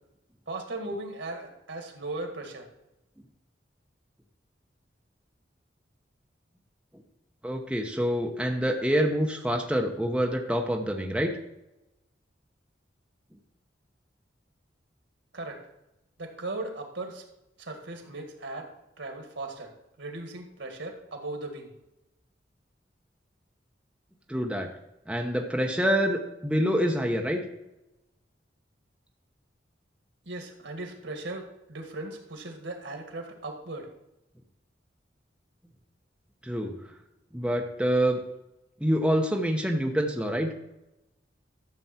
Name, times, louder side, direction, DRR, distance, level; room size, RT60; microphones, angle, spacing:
voice 1, 0.5-2.7 15.3-15.6 16.2-17.2 17.6-18.7 19.0-19.7 20.0-21.7 30.2-33.9, right 2 dB, 85° right, 4 dB, 2.0 m, -37 dB
voice 2, 7.4-11.3 24.3-24.7 25.1-27.4 36.4-36.8 37.3-38.2 38.8-40.5, equal, 5° right, 1 dB, 1.0 m, -26 dB
12.5 x 6.9 x 4.4 m, 0.92 s
head